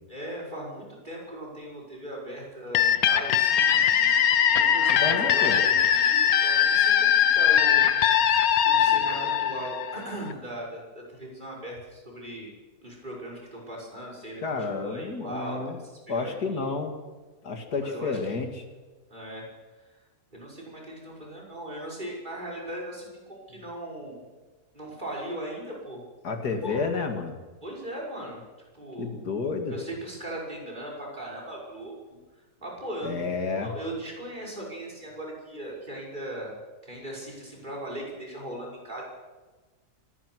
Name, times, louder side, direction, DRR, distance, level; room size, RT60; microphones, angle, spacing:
voice 1, 0.1-7.8 8.6-12.5 12.8-14.4 14.7-16.7 17.8-18.4 19.1-19.4 20.3-24.2 24.7-26.0 26.6-26.8 27.6-28.4 28.7-29.1 29.7-32.2 32.6-33.2 33.6-36.6 36.9-39.0, right 1 dB, 30° right, -2 dB, 6.2 m, -38 dB
sound 1, 2.7-10.3, left 9 dB, 70° left, 1.4 m, -21 dB
voice 2, 4.9-5.6 14.4-15.8 16.1-16.9 17.4-18.5 26.2-27.3 29.0-29.7 33.0-33.7, left 4 dB, 85° left, 5 dB, 2.7 m, -30 dB
24.5 x 17.5 x 6.3 m, 1.3 s
omnidirectional pair, 1.6 m